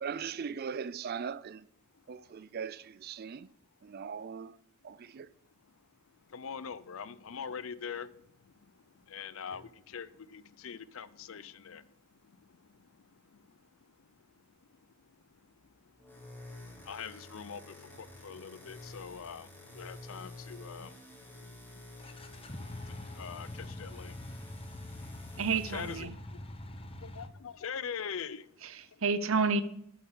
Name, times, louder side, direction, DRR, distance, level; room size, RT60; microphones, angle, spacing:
voice 1, 0.0-1.7 2.1-3.5 3.8-4.6 4.8-5.3, right 6 dB, 45° right, 0.4 m, -39 dB
voice 2, 1.9-2.2 3.2-3.5 4.0-4.1 4.9-5.3 5.6-25.2 25.7-29.0, left 6 dB, 70° left, 0.5 m, -45 dB
sound 1, 9.5-9.7 15.8-26.0, left 1 dB, 10° left, 4.1 m, -50 dB
sound 2, 22.0-27.3, left 1 dB, 25° left, 0.9 m, -44 dB
voice 3, 25.4-26.1 28.6-29.6, right 4 dB, 65° right, 0.8 m, -30 dB
8.7 x 7.9 x 4.9 m
head